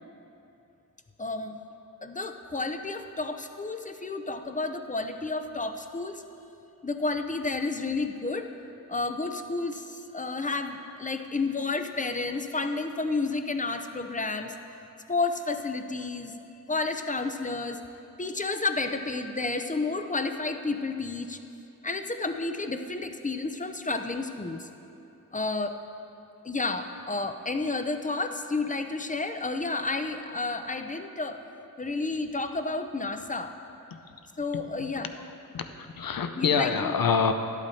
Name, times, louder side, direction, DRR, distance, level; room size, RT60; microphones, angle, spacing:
voice 1, 1.2-1.6 2.0-6.2 6.8-8.5 8.9-14.5 15.1-16.3 16.7-17.8 18.2-21.4 21.8-24.7 25.3-25.8 26.4-31.4 31.8-33.5 34.4-35.1 36.4-36.9, left 3 dB, 25° left, 7 dB, 0.6 m, -31 dB
voice 2, 34.5-34.9 35.5-37.3, left 6 dB, 80° left, 7 dB, 0.7 m, -27 dB
12.0 x 8.2 x 4.2 m, 2.8 s
wide cardioid pair, 70°, 34 cm